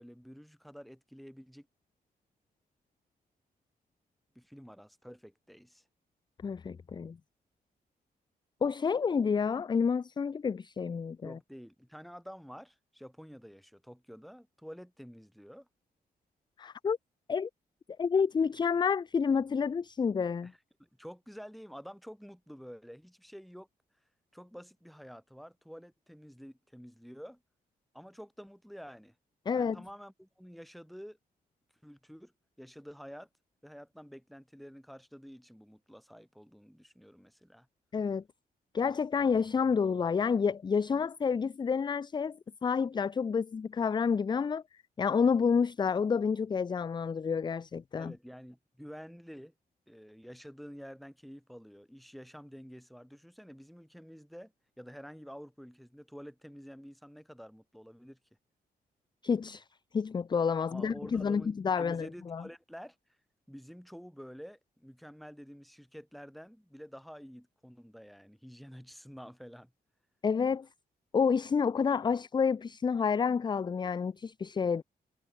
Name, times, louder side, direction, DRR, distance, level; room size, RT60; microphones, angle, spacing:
voice 1, 0.0-1.7 4.3-5.8 11.2-15.7 20.4-23.7 24.3-27.4 27.9-29.1 29.5-31.2 31.8-32.3 32.6-33.3 33.6-37.7 48.0-49.5 49.9-54.5 54.8-58.2 60.6-63.0 63.5-69.7, equal, ahead, 7.5 m, -49 dB
voice 2, 6.4-7.2 8.6-11.4 16.6-17.0 17.3-17.5 18.0-20.5 29.5-29.8 37.9-38.2 38.7-44.6 45.0-48.1 59.2-59.6 59.9-62.4 70.2-70.7 71.1-74.8, left 6 dB, 30° left, 0.5 m, -29 dB
cardioid pair, 120°, 16 cm